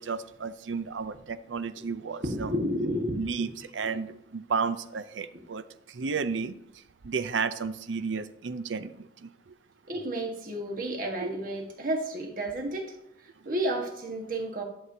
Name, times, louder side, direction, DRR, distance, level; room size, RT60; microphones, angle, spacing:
voice 1, 0.0-2.5 3.1-5.6 5.9-6.5 7.0-9.1 11.2-11.3, right 5 dB, 85° right, 13 dB, 0.6 m, -32 dB
voice 2, 2.2-3.2 5.3-5.4 9.9-12.9 13.4-14.6, right 1 dB, 45° right, 2 dB, 1.5 m, -31 dB
11.5 x 7.1 x 2.8 m, 0.82 s
head